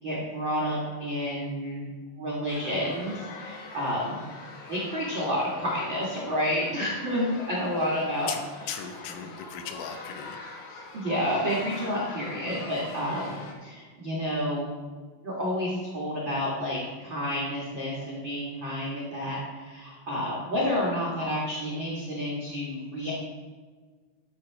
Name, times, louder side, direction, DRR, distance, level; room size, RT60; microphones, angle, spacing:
voice 1, 0.0-1.9 2.2-4.2 4.7-8.3 10.9-14.7 15.2-23.1, equal, 80° right, -5 dB, 1.0 m, -30 dB
sound 1, 2.5-13.5, left 3 dB, 65° left, 3.4 m, -43 dB
voice 2, 8.3-10.4, left 7 dB, 80° left, 6 dB, 3.4 m, -37 dB
12.0 x 7.0 x 4.8 m, 1.5 s
omnidirectional pair, 5.6 m